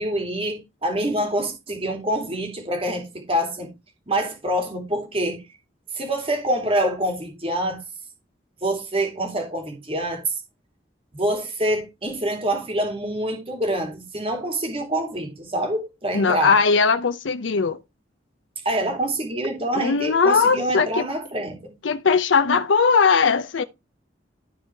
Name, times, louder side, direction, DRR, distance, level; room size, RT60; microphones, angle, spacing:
voice 1, 0.0-3.7 4.1-5.4 5.9-7.8 8.6-10.3 11.1-16.5 18.6-21.7, right 1 dB, 30° right, 2.7 m, -26 dB
voice 2, 16.1-17.8 19.7-21.0 21.8-23.6, left 5 dB, 85° left, 0.6 m, -19 dB
14.0 x 4.8 x 3.4 m
head